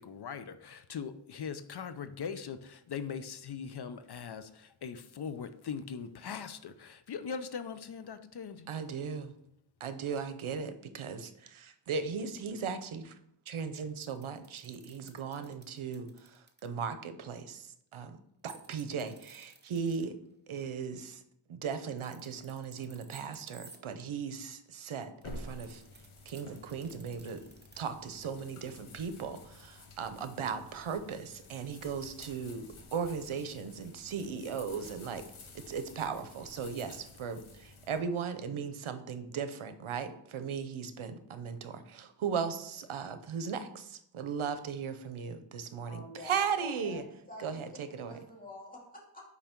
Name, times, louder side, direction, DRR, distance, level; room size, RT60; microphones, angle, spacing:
voice 1, 0.0-8.7, left 6 dB, 55° left, 11 dB, 0.5 m, -41 dB
voice 2, 8.7-9.3 9.8-13.2 13.5-20.1 20.5-21.2 21.5-25.8 26.3-27.4 27.8-35.2 35.5-47.0 47.4-48.2, right 6 dB, 75° right, 10 dB, 0.8 m, -37 dB
sound 1, 13.7-16.7 18.5-20.1 21.8-23.8 24.7-27.8, right 3 dB, 20° right, 0.8 m, -56 dB
sound 2, 25.2-38.0, left 2 dB, 75° left, 1.1 m, -51 dB
voice 3, 45.9-47.0 47.3-47.6 48.0-49.2, left 1 dB, 15° left, -3 dB, 2.2 m, -47 dB
5.6 x 4.8 x 4.4 m, 0.73 s
wide cardioid pair, 90°, 49 cm